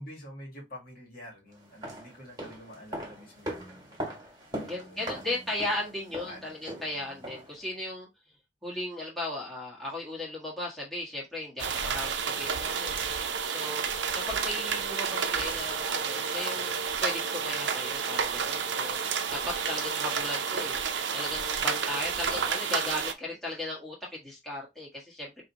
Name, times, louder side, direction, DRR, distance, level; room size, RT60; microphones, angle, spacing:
voice 1, 0.0-3.8 4.5-5.5 6.2-6.5 6.9-7.2 22.3-22.5, equal, 50° left, 1.7 m, -47 dB
sound 1, 1.6-7.6 7.9-8.0, equal, 20° right, 1.6 m, -40 dB
voice 2, 4.7-8.1 8.6-13.0 13.4-13.9 14.1-20.8 21.1-25.4, left 1 dB, ahead, 1.3 m, -36 dB
sound 2, 11.6-23.1, right 6 dB, 70° right, 0.6 m, -30 dB
4.9 x 2.7 x 2.9 m
head